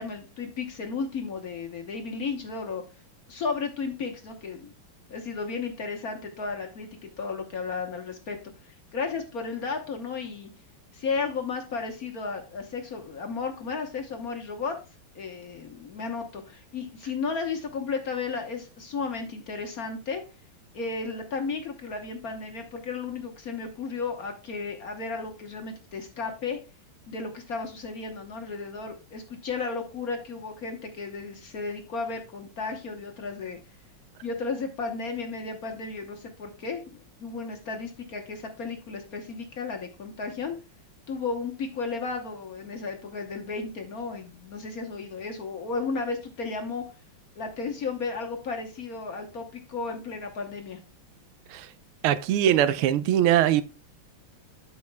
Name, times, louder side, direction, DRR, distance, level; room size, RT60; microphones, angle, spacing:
voice 1, 0.0-2.8 3.3-4.7 5.1-8.4 8.6-10.5 10.9-14.8 15.1-20.2 20.7-26.6 27.1-33.6 34.2-40.6 41.1-46.8 47.3-50.8, left 4 dB, 50° left, 1.3 m, -34 dB
voice 2, 52.0-53.6, right 11 dB, 85° right, 1.5 m, -21 dB
12.5 x 5.3 x 2.2 m
omnidirectional pair, 2.4 m